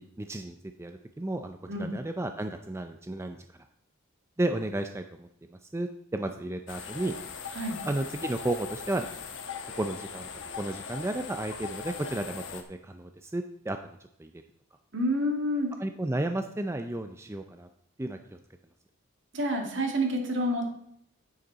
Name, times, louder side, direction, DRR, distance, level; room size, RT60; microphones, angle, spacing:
voice 1, 0.0-3.4 4.4-7.2 7.9-9.1 9.8-10.3 10.6-14.4 15.8-17.7 18.0-18.4, right 1 dB, 15° right, 7 dB, 0.4 m, -33 dB
sound 1, 6.7-12.6, left 6 dB, 60° left, 1.1 m, -40 dB
voice 2, 14.9-15.7 19.3-20.7, equal, 60° right, 2 dB, 2.2 m, -28 dB
9.6 x 8.9 x 4.1 m, 0.72 s
head